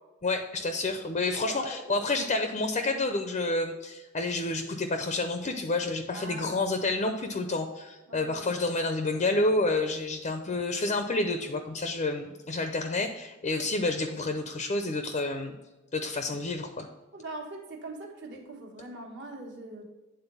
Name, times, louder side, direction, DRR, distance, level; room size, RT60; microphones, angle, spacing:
voice 1, 0.2-15.6 15.9-16.9, left 2 dB, 35° left, 6 dB, 0.5 m, -29 dB
voice 2, 1.5-2.1 6.1-6.7 8.1-8.8 17.1-19.8, right 2 dB, 60° right, 1 dB, 1.4 m, -42 dB
9.0 x 3.8 x 5.4 m, 1.1 s
head